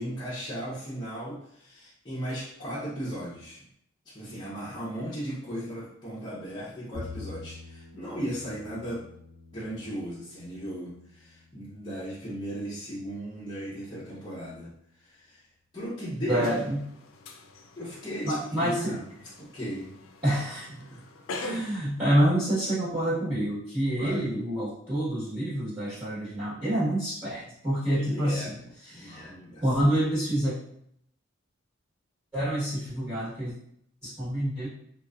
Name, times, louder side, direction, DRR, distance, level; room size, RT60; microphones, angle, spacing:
voice 1, 0.0-3.6 4.0-9.1 9.5-15.4 15.7-16.5 17.8-19.0 19.4-20.0 20.3-20.4 20.8-21.0 24.0-24.2 28.0-29.6, equal, 20° left, -10 dB, 0.7 m, -37 dB
Bowed string instrument, 6.9-13.3, left 3 dB, 80° right, 1.3 m, -47 dB
voice 2, 16.3-16.8 18.2-19.0 20.2-20.7 21.3-28.5 28.8-29.3 29.6-30.5 32.3-33.5 34.0-34.7, right 1 dB, 10° right, -12 dB, 1.3 m, -27 dB
sound 1, 16.4-21.8, left 2 dB, 85° left, 0.4 m, -43 dB
3.0 x 2.3 x 2.4 m, 0.69 s
head